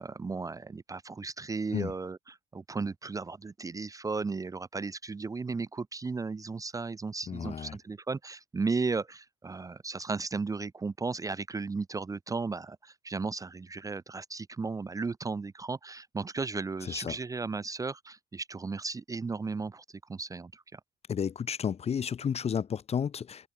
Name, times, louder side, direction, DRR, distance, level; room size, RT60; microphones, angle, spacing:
voice 1, 0.0-20.8, right 4 dB, 20° right, 0.8 m, -35 dB
voice 2, 7.3-7.8 16.8-17.2 21.1-23.5, left 7 dB, 40° left, 1.3 m, -32 dB
cardioid pair, 110°, 17 cm